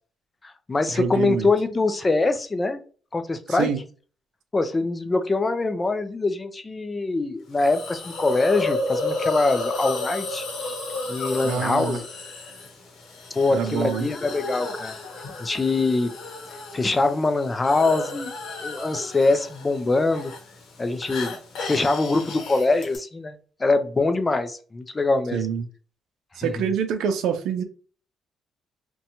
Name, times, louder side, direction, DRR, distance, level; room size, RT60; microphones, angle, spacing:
voice 1, 0.4-2.8 3.1-3.7 4.5-10.4 11.1-12.0 13.4-14.9 15.4-16.1 16.5-18.3 18.6-20.3 20.8-21.4 21.7-25.4 26.4-26.5, left 3 dB, 25° left, 9 dB, 0.4 m, -23 dB
voice 2, 0.9-1.5 3.5-3.8 11.4-12.0 13.5-14.1 25.3-25.7 26.4-27.6, right 7 dB, 85° right, 8 dB, 0.4 m, -26 dB
Hiss, 7.6-23.0, left 2 dB, 75° left, 0.8 m, -33 dB
2.7 x 2.2 x 2.7 m, 0.39 s
cardioid pair, 90°, 0 cm